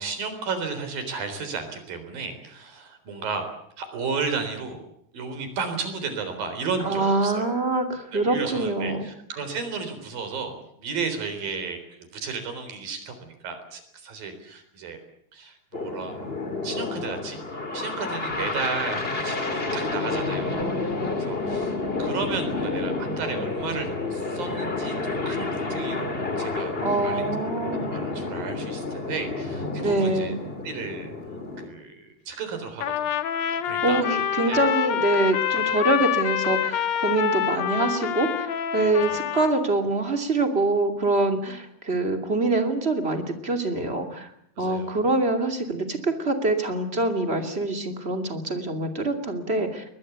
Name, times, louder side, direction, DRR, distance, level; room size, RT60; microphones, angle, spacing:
voice 1, 0.0-3.4 3.8-4.8 5.1-7.6 8.1-11.8 12.1-15.0 15.3-17.4 17.7-20.9 21.2-27.5 27.8-30.3 30.6-31.1 31.6-33.1 33.6-34.0 34.5-34.6 38.4-38.5 39.0-39.2 44.6-45.0, right 5 dB, 60° right, 8 dB, 5.5 m, -33 dB
voice 2, 6.8-9.1 26.8-27.8 29.8-30.4 33.8-44.3 44.6-49.8, right 2 dB, 20° right, 5 dB, 2.1 m, -25 dB
sound 1, 15.7-31.7, left 3 dB, 20° left, 1.8 m, -30 dB
Trumpet, 32.8-39.6, left 9 dB, 60° left, 1.9 m, -26 dB
22.0 x 21.5 x 8.2 m, 0.72 s
omnidirectional pair, 4.7 m